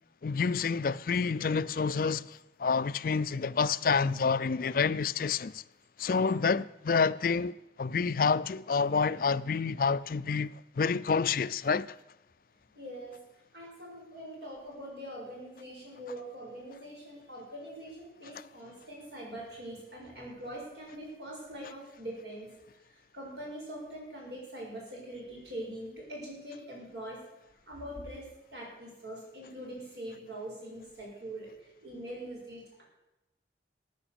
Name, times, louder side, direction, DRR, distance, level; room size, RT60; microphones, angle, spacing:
voice 1, 0.2-5.6 6.0-10.5 10.8-12.0, left 5 dB, 50° left, 0.4 m, -28 dB
voice 2, 12.7-13.2 13.5-22.5 22.9-27.2 27.7-32.8, right 1 dB, 70° right, 6.3 m, -43 dB
14.0 x 9.5 x 6.9 m
head